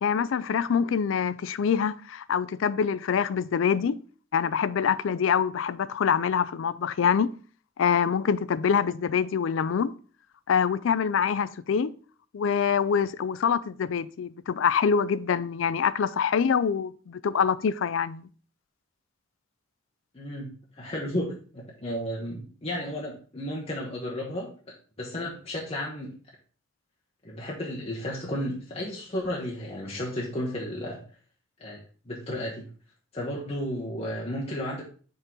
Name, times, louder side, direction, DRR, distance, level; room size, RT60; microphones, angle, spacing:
voice 1, 0.0-4.0 4.3-7.3 7.8-9.9 10.5-11.9 12.3-18.2, left 7 dB, 65° left, 0.4 m, -25 dB
voice 2, 20.1-24.5 25.0-26.1 27.2-31.0 31.6-32.7 33.1-34.8, left 1 dB, 30° left, 1.0 m, -33 dB
5.4 x 3.7 x 5.3 m
head